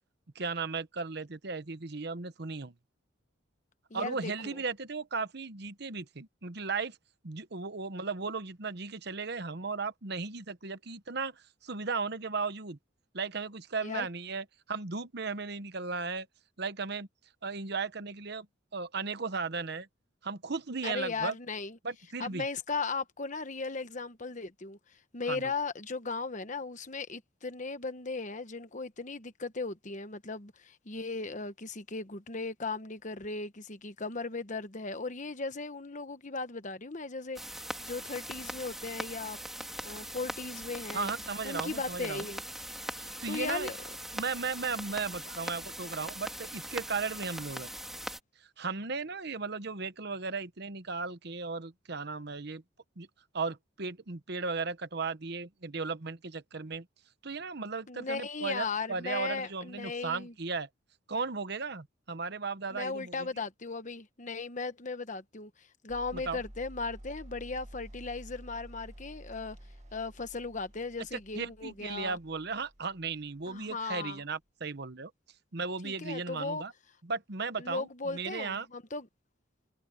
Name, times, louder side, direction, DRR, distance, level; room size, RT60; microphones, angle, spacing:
voice 1, 0.3-2.7 3.9-7.0 7.2-12.8 13.1-16.3 16.6-17.1 17.4-18.5 18.7-19.9 20.2-21.3 21.8-22.4 25.3-25.4 40.9-42.2 43.0-43.7 44.1-47.7 48.6-52.6 53.0-53.1 53.3-56.9 57.2-60.7 61.1-63.3 66.1-66.4 71.1-75.1 75.5-76.7 77.0-78.7, right 4 dB, 60° right, 1.1 m, -36 dB
voice 2, 3.9-4.6 13.8-14.1 20.8-21.8 22.2-24.8 25.1-37.4 37.8-39.4 39.8-41.1 41.4-42.4 43.3-43.8 57.9-60.3 62.7-69.6 69.9-72.2 73.4-74.2 75.8-76.6 77.6-79.1, left 4 dB, 40° left, 1.2 m, -37 dB
sound 1, 37.4-48.2, equal, ahead, 3.1 m, -41 dB
sound 2, 65.9-74.0, equal, 35° right, 1.8 m, -51 dB
head